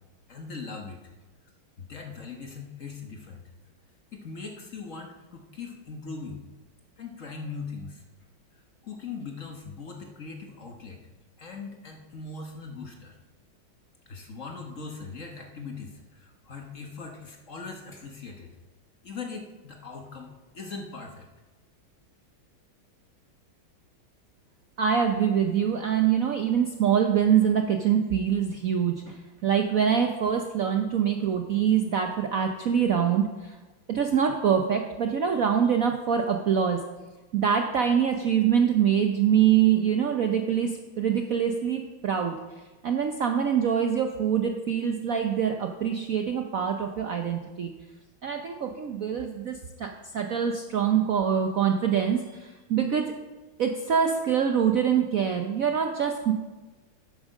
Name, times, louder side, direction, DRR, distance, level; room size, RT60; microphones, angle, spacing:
voice 1, 0.3-1.0 1.8-3.4 4.1-6.5 7.0-8.0 8.8-11.0 11.4-13.1 14.1-18.5 19.0-21.3, left 4 dB, 45° left, 3 dB, 1.3 m, -40 dB
voice 2, 24.8-33.6 33.9-36.8 37.3-42.3 42.8-47.7 48.2-53.1 53.6-56.3, right 8 dB, 60° right, 4 dB, 0.9 m, -24 dB
10.0 x 8.6 x 6.4 m, 1.2 s
omnidirectional pair, 2.3 m